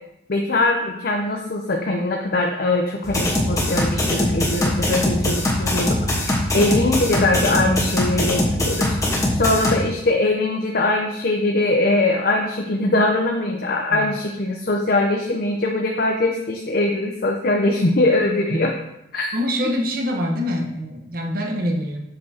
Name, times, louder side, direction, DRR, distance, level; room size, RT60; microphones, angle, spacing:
voice 1, 0.3-18.7 19.1-19.3, left 2 dB, 50° left, 1 dB, 0.6 m, -22 dB
sound 1, 3.0-9.8, left 1 dB, 15° left, 1.2 m, -22 dB
voice 2, 19.3-22.0, equal, 50° right, 1 dB, 1.0 m, -25 dB
7.6 x 6.7 x 2.9 m, 0.84 s
head